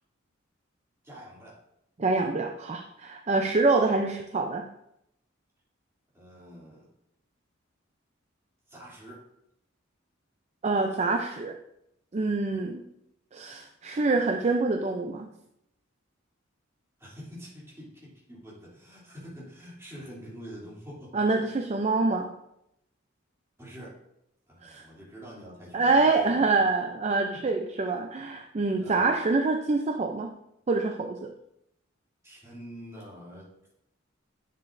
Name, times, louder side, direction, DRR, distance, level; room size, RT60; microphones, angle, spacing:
voice 1, 1.0-1.6 3.4-3.6 6.1-6.9 8.7-9.2 12.5-12.8 17.0-21.2 23.6-24.0 24.5-26.7 27.3-27.9 28.7-29.1 32.2-33.5, equal, 15° right, -7 dB, 2.9 m, -46 dB
voice 2, 2.0-4.6 10.6-11.5 12.1-12.8 13.3-15.3 21.1-22.3 24.6-24.8 25.7-30.3 30.7-31.3, right 3 dB, 35° right, 4 dB, 0.5 m, -26 dB
10.5 x 6.8 x 2.6 m, 0.81 s
head